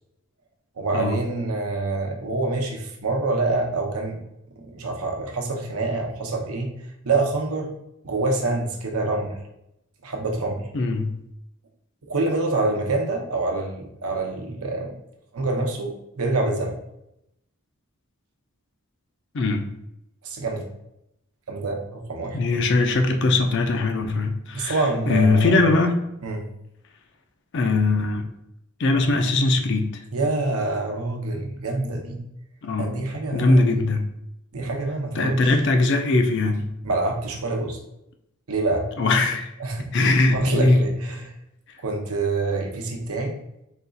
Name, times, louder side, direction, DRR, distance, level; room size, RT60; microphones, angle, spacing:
voice 1, 0.8-4.2 4.6-6.8 7.0-7.7 8.0-9.3 10.0-10.6 12.1-14.9 15.3-16.8 20.2-20.6 21.5-22.6 24.5-25.7 26.2-26.4 30.1-32.2 32.8-33.8 34.5-35.6 36.8-37.8 38.5-38.9 39.6-39.8 40.3-41.3 41.8-43.3, right 3 dB, 80° right, 2 dB, 0.8 m, -26 dB
voice 2, 10.7-11.2 19.3-19.7 22.3-26.0 27.5-28.3 28.8-30.0 32.6-33.0 33.3-34.1 35.2-36.7 39.0-39.5 39.9-40.8, left 2 dB, 55° left, 5 dB, 0.4 m, -21 dB
4.1 x 2.4 x 3.9 m, 0.82 s
head